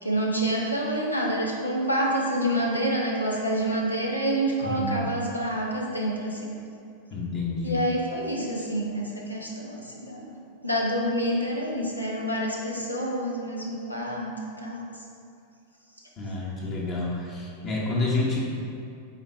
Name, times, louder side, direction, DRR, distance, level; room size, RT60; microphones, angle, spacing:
voice 1, 0.0-6.6 7.6-10.4 10.6-14.3 14.6-14.9, right 1 dB, 85° left, -2 dB, 0.9 m, -27 dB
voice 2, 4.6-5.0 7.1-7.8 16.2-18.4, left 2 dB, 35° left, -5 dB, 1.2 m, -29 dB
7.9 x 4.3 x 3.4 m, 2.5 s
figure-of-eight pair, 90°, 0 cm